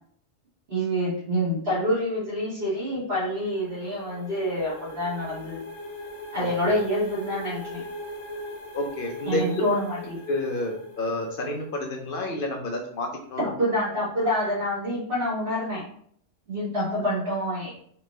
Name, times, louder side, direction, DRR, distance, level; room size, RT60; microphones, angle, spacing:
voice 1, 0.7-5.6 6.3-7.8 9.2-10.2 13.4-15.8 16.5-17.7, equal, 45° right, -8 dB, 1.4 m, -27 dB
sound 1, 3.1-11.7, left 2 dB, 80° left, 1.1 m, -40 dB
voice 2, 6.4-6.7 8.7-9.6 10.3-13.5, left 2 dB, 55° left, 2 dB, 0.6 m, -30 dB
3.4 x 2.5 x 3.0 m, 0.63 s
omnidirectional pair, 1.3 m